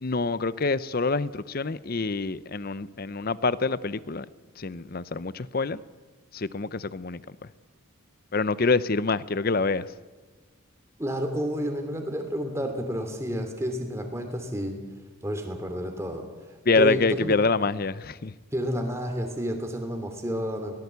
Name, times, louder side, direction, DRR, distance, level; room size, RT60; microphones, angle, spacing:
voice 1, 0.0-4.3 4.6-5.8 6.3-7.2 8.3-9.9 16.7-18.3, left 3 dB, 45° left, 17 dB, 0.6 m, -26 dB
voice 2, 11.0-14.7 15.2-16.2 16.8-17.3 18.5-20.7, equal, 15° right, 5 dB, 2.8 m, -30 dB
22.5 x 18.0 x 8.2 m, 1.3 s
head